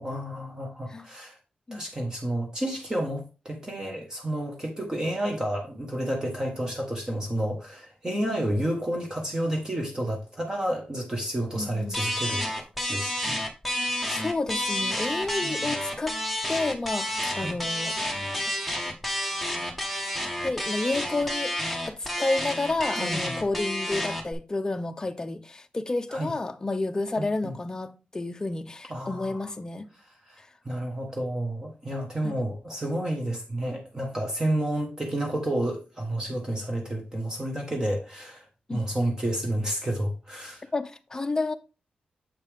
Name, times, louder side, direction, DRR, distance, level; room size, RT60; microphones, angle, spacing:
voice 1, 0.0-1.4 1.7-13.4 15.4-15.7 17.4-17.6 23.0-23.3 26.1-26.3 27.2-27.5 28.9-29.5 30.2-30.4 30.6-40.7, right 1 dB, 20° right, 1.3 m, -30 dB
voice 2, 11.5-12.0 14.1-16.2 16.5-18.0 20.4-21.5 21.9-29.9 32.2-32.3 38.7-38.8 40.7-41.5, left 2 dB, 20° left, 0.6 m, -30 dB
sound 1, 11.9-24.3, left 1 dB, 5° right, 1.1 m, -30 dB
7.3 x 5.4 x 3.4 m
wide cardioid pair, 130°, 3 cm